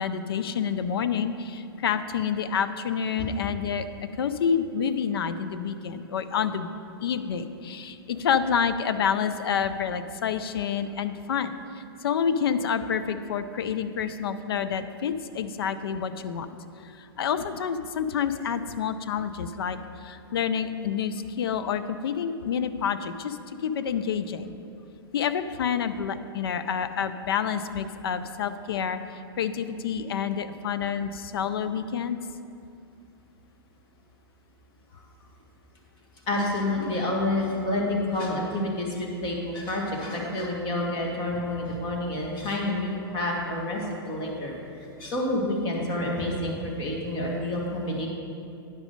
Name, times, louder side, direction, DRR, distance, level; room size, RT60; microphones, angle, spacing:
voice 1, 0.0-6.7 7.0-11.6 12.0-16.5 16.8-24.5 25.1-32.2, left 7 dB, 70° left, 11 dB, 0.5 m, -28 dB
voice 2, 36.3-44.5 45.0-48.1, left 1 dB, 35° left, -1 dB, 2.0 m, -28 dB
9.7 x 6.1 x 5.2 m, 2.5 s
hypercardioid pair, 115°, 13 cm